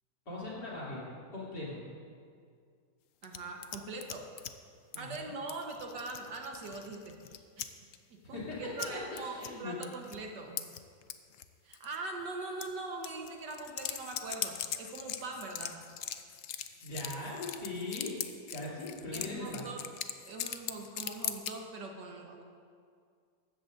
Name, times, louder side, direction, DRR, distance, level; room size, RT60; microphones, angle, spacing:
voice 1, 0.3-1.1 1.3-1.8 4.9-5.3 8.3-9.8 16.8-18.1 18.5-19.7, left 2 dB, 60° left, -7 dB, 3.6 m, -40 dB
sound 1, 3.2-4.5 4.9-5.2 5.5-7.7 7.9-8.0 8.8-8.9 9.2-9.5 9.8-10.2 10.6-11.5 11.7-12.0 12.6-12.7 13.0-21.5, left 10 dB, 85° left, 0.7 m, -40 dB
voice 2, 3.2-4.3 5.0-7.6 8.1-10.7 11.6-15.8 19.1-19.8 20.2-22.4, right 3 dB, 70° right, 2 dB, 1.8 m, -42 dB
15.5 x 13.0 x 2.6 m, 2.2 s
omnidirectional pair, 2.0 m